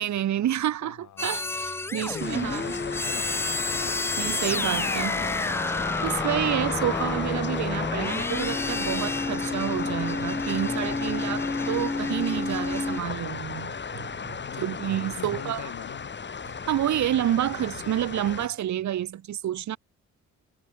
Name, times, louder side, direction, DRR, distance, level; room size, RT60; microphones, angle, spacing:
voice 1, 0.0-2.7 4.2-5.2 6.0-14.1 14.6-15.7 16.7-19.8, right 11 dB, 70° right, 2.3 m, -29 dB
voice 2, 0.8-1.3 1.9-3.6 4.4-5.8 14.3-16.1, left 12 dB, 70° left, 3.4 m, -43 dB
sound 1, 1.2-13.0, left 3 dB, 10° left, 0.3 m, -30 dB
sound 2, 2.2-18.5, left 5 dB, 35° left, 4.3 m, -34 dB
cardioid pair, 90°, 30 cm